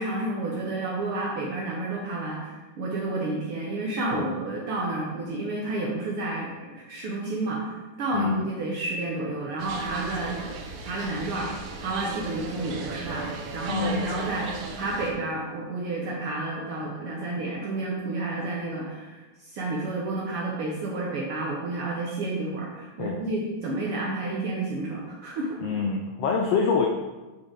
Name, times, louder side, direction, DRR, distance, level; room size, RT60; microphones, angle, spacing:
voice 1, 0.0-10.4 10.8-25.6, right 2 dB, 65° right, -3 dB, 1.4 m, -31 dB
voice 2, 8.1-8.5 13.7-14.1 23.0-23.2 25.6-26.9, left 5 dB, 80° left, 2 dB, 1.4 m, -26 dB
sound 1, 9.6-15.1, right 3 dB, 85° right, 2.4 m, -36 dB
8.3 x 4.7 x 3.7 m, 1.2 s
omnidirectional pair, 3.4 m